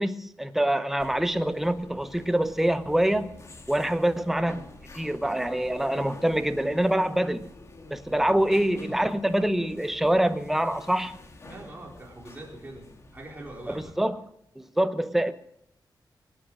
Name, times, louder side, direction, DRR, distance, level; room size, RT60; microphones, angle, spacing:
voice 1, 0.0-3.3 3.7-4.6 4.9-7.5 7.9-11.2 13.7-14.2 14.6-15.3, right 1 dB, 5° right, 0.7 m, -25 dB
sound 1, 1.0-13.9, left 2 dB, 35° left, 1.9 m, -48 dB
voice 2, 11.5-14.0, right 1 dB, 20° right, 4.3 m, -43 dB
24.0 x 9.6 x 6.2 m
wide cardioid pair, 160°, 8 cm